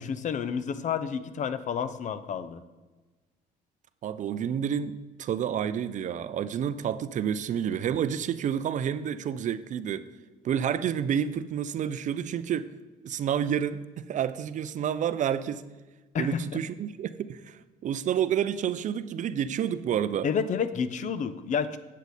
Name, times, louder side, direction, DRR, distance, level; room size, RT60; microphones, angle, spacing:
voice 1, 0.0-2.6 16.1-16.6 20.2-21.8, left 7 dB, 45° left, 13 dB, 0.6 m, -30 dB
voice 2, 4.0-10.1 10.4-12.7 13.0-15.7 16.2-20.3, right 9 dB, 45° right, 14 dB, 0.5 m, -29 dB
8.3 x 8.1 x 4.1 m, 1.2 s
cardioid pair, 110°, 17 cm